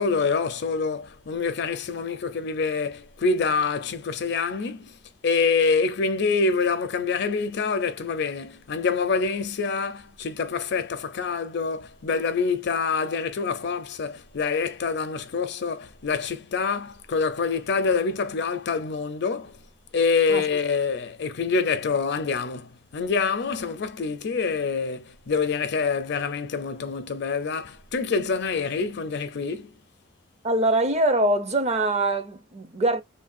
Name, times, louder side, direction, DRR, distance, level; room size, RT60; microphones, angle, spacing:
voice 1, 0.0-5.0 5.2-19.6 19.9-29.7, left 5 dB, 60° left, 0.5 m, -26 dB
voice 2, 30.4-33.0, right 1 dB, 35° right, 0.6 m, -23 dB
3.2 x 2.3 x 2.5 m
head